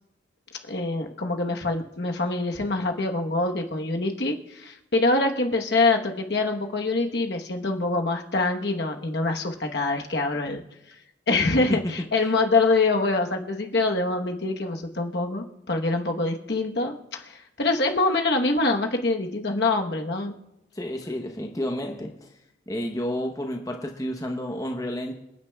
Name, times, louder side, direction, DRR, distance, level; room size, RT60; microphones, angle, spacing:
voice 1, 0.7-10.6 11.3-20.4, left 3 dB, 65° left, 3 dB, 1.1 m, -25 dB
voice 2, 20.8-22.3 22.7-25.1, equal, 20° left, 3 dB, 0.8 m, -30 dB
28.0 x 9.5 x 2.3 m, 0.89 s
head